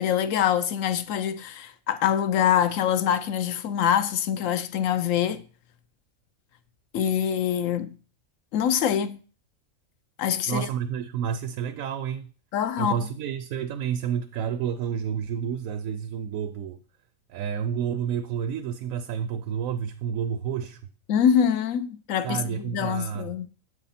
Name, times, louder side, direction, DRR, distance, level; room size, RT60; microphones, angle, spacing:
voice 1, 0.0-5.4 6.9-7.9 8.5-9.2 10.2-10.7 12.5-12.9 21.1-23.5, left 9 dB, 75° left, 1.0 m, -24 dB
voice 2, 10.5-12.3 12.8-16.8 17.3-20.8 22.2-23.3, right 8 dB, 85° right, 1.0 m, -30 dB
7.6 x 4.9 x 4.2 m
omnidirectional pair, 1.4 m